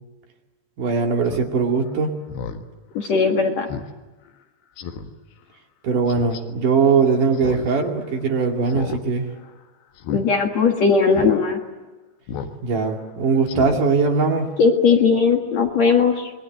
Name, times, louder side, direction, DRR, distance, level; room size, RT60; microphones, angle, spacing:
voice 1, 0.8-2.1 5.8-9.3 12.6-14.5, right 5 dB, 55° right, 2 dB, 3.8 m, -20 dB
Speech synthesizer, 1.3-1.5 1.9-2.0 2.3-2.6 3.0-3.1 3.7-3.9 4.3-4.4 4.8-5.1 6.1-6.4 7.3-7.7 8.0-8.1 8.7-9.0 9.3-9.5 10.0-10.2 10.7-10.8 11.1-11.3 12.3-12.6 12.9-13.0 13.5-13.8 14.1-14.2, left 7 dB, 80° left, 3.6 m, -32 dB
voice 2, 2.9-3.7 10.1-11.6 14.6-16.3, left 5 dB, 50° left, 3 dB, 2.6 m, -18 dB
27.5 x 22.5 x 9.3 m, 1.2 s
omnidirectional pair, 4.5 m